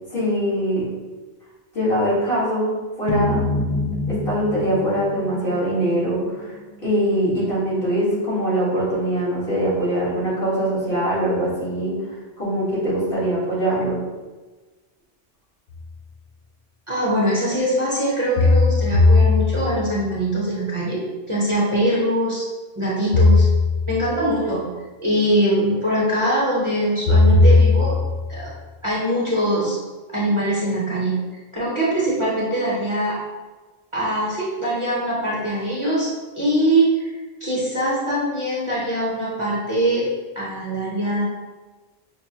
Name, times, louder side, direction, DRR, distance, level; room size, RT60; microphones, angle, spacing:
voice 1, 0.1-0.9 1.7-3.4 4.1-6.5 6.8-12.0 12.4-14.0, right 1 dB, 60° left, -9 dB, 1.7 m, -22 dB
sound 1, 3.1-6.3, left 2 dB, 40° left, 0.3 m, -26 dB
sound 2, 15.7-15.8 18.4-20.0 23.1-24.2 27.1-28.4, left 3 dB, 85° left, 0.8 m, -16 dB
voice 2, 16.9-22.5 22.8-23.5 23.9-24.6 25.0-28.0 28.3-28.5 28.8-29.8 30.1-31.2 31.5-33.2 33.9-37.1 37.4-40.1 40.3-41.3, right 1 dB, 30° right, -7 dB, 0.8 m, -22 dB
5.3 x 2.0 x 2.8 m, 1.3 s
omnidirectional pair, 1.1 m